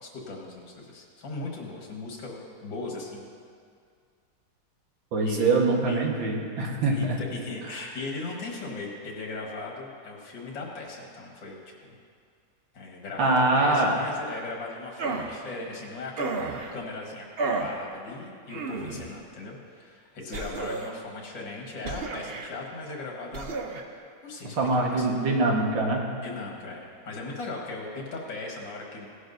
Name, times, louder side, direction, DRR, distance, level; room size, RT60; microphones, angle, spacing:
voice 1, 0.0-3.3 5.2-5.5 5.9-6.2 6.9-11.6 12.7-16.3 16.7-17.3 17.6-23.5 24.2-25.1 26.2-29.1, left 3 dB, 75° left, -1 dB, 2.3 m, -38 dB
voice 2, 5.1-7.2 13.2-14.0 24.6-26.1, right 2 dB, 80° right, -1 dB, 2.2 m, -24 dB
sound 1, 15.0-15.4 16.2-16.7 17.4-17.8 18.5-19.1 20.3-21.0 21.8-22.5 23.3-23.8, right 3 dB, 60° right, 0.6 m, -32 dB
17.5 x 11.5 x 2.7 m, 2.2 s
omnidirectional pair, 2.0 m